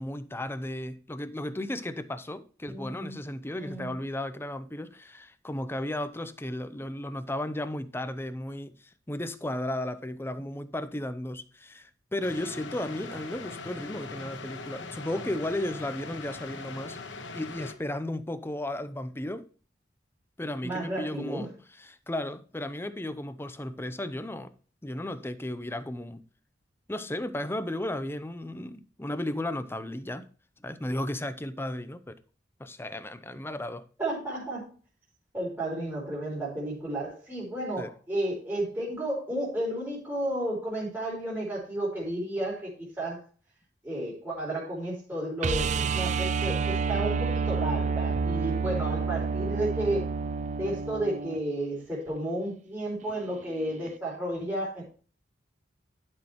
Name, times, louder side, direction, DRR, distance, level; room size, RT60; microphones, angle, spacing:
voice 1, 0.0-8.8 9.1-17.0 17.3-19.5 20.4-21.5 21.8-24.5 24.8-26.2 26.9-30.3 30.6-32.2 32.6-33.9 37.8-37.9, left 1 dB, 15° left, 0.6 m, -34 dB
voice 2, 2.7-3.2 3.6-3.9 20.6-21.5 34.0-34.7 35.3-43.2 43.8-50.1 50.6-54.8, right 1 dB, 15° right, 3.5 m, -32 dB
sound 1, 12.2-17.7, left 3 dB, 80° left, 1.3 m, -41 dB
sound 2, 45.4-51.4 53.9-54.0, right 5 dB, 40° right, 0.4 m, -29 dB
12.0 x 6.3 x 3.0 m
head